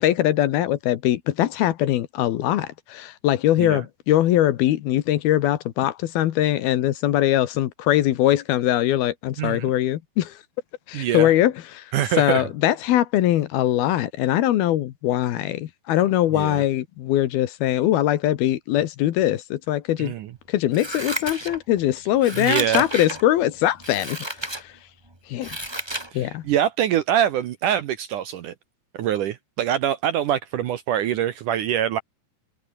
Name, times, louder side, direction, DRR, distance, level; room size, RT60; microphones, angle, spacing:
voice 1, 0.0-10.4 10.9-20.1 20.5-24.7 25.3-25.6 26.1-26.4, left 13 dB, 75° left, 3.0 m, -22 dB
voice 2, 9.4-9.7 10.9-11.3 11.9-12.5 16.3-16.6 20.0-20.3 22.4-22.9 26.1-28.5 28.9-32.0, right 10 dB, 70° right, 2.1 m, -24 dB
Scissors, 20.7-21.8 22.2-23.2 23.8-24.6 25.1-26.1 26.5-26.6, right 1 dB, 5° right, 2.6 m, -31 dB
omnidirectional pair, 4.7 m